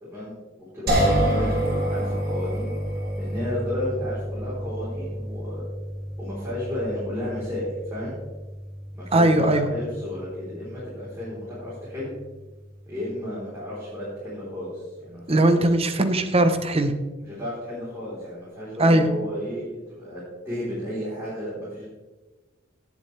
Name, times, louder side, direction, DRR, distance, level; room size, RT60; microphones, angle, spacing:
voice 1, 0.0-2.8 3.2-5.6 6.2-7.6 7.9-8.2 8.9-12.1 12.9-15.7 17.2-20.2 20.4-21.9, left 1 dB, 15° right, -9 dB, 3.9 m, -33 dB
sound 1, 0.9-13.9, equal, 50° right, 3.6 m, -30 dB
voice 2, 9.1-9.7 15.3-16.9 18.8-19.1, right 1 dB, 30° right, 8 dB, 0.8 m, -19 dB
17.5 x 7.5 x 3.3 m, 1.2 s
head